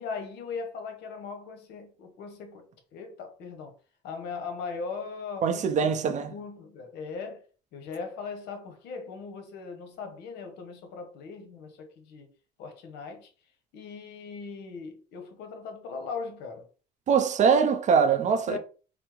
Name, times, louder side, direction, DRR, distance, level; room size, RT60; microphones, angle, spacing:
voice 1, 0.0-2.6 2.9-3.7 4.0-5.9 6.2-7.4 7.7-12.3 12.6-13.3 13.7-16.7 18.5-18.6, left 5 dB, 80° left, 0.9 m, -39 dB
voice 2, 5.4-6.3 17.1-18.6, right 6 dB, 45° right, 0.5 m, -23 dB
3.4 x 2.0 x 3.0 m
cardioid pair, 110°, 17 cm